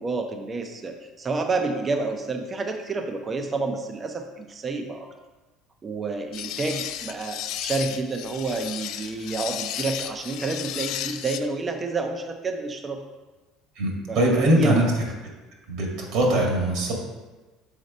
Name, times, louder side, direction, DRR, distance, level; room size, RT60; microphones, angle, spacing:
voice 1, 0.0-5.1 5.8-13.0 14.1-14.2 14.5-14.9, right 3 dB, 20° right, 5 dB, 0.6 m, -29 dB
sound 1, 6.3-11.4, left 11 dB, 55° left, 0.4 m, -33 dB
voice 2, 13.8-14.8 15.7-16.9, right 1 dB, 60° right, -1 dB, 1.9 m, -21 dB
6.5 x 4.0 x 5.4 m, 1.2 s
cardioid pair, 155°, 0 cm